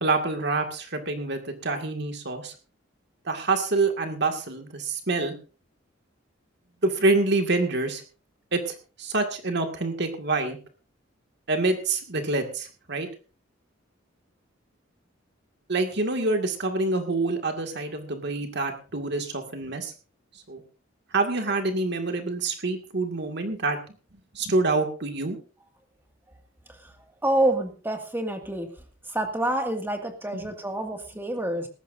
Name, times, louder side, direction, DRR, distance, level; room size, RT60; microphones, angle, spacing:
voice 1, 0.0-2.5 3.3-5.3 6.8-8.0 8.5-10.6 11.5-13.1 15.7-19.9 20.5-20.6 21.1-23.8 24.3-25.4 30.3-30.4, right 3 dB, 60° right, 5 dB, 2.1 m, -26 dB
voice 2, 27.2-28.7 29.1-31.7, right 1 dB, 10° right, 4 dB, 2.0 m, -27 dB
18.5 x 15.0 x 2.6 m, 0.36 s
head